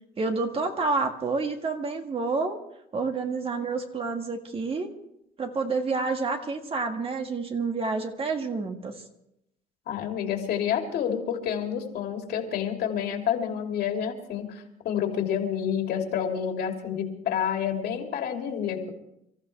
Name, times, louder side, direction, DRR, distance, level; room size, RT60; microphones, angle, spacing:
voice 1, 0.2-2.6 2.9-4.9 5.4-8.9, right 4 dB, 35° right, 4 dB, 1.9 m, -29 dB
voice 2, 9.9-18.9, left 8 dB, 70° left, 2 dB, 3.0 m, -29 dB
25.5 x 14.5 x 3.4 m, 0.80 s
cardioid pair, 110°, 17 cm